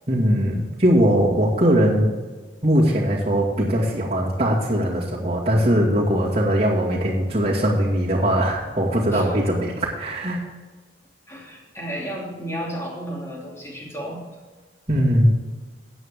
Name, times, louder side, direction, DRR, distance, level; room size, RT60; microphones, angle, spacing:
voice 1, 0.1-2.1 2.6-10.4 14.9-15.3, equal, 35° right, -6 dB, 2.2 m, -20 dB
voice 2, 11.3-14.2, right 1 dB, 15° left, -3 dB, 3.0 m, -33 dB
14.0 x 9.1 x 3.7 m, 1.4 s
head